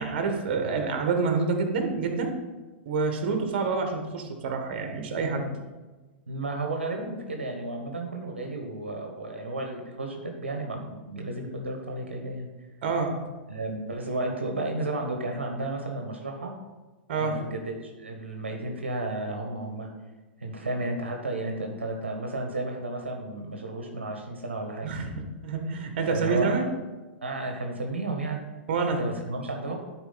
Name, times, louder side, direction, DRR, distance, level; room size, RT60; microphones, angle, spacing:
voice 1, 0.0-2.3 2.8-5.5 12.8-13.2 17.1-17.4 24.8-26.7 28.7-29.0, right 4 dB, 55° right, 5 dB, 1.4 m, -27 dB
voice 2, 6.3-12.5 13.5-16.5 17.2-19.9 20.4-24.9 26.1-26.6 27.2-28.4 29.0-29.7, right 2 dB, 85° right, 2 dB, 1.1 m, -33 dB
11.5 x 4.5 x 4.1 m, 1.2 s
hypercardioid pair, 105°, 6 cm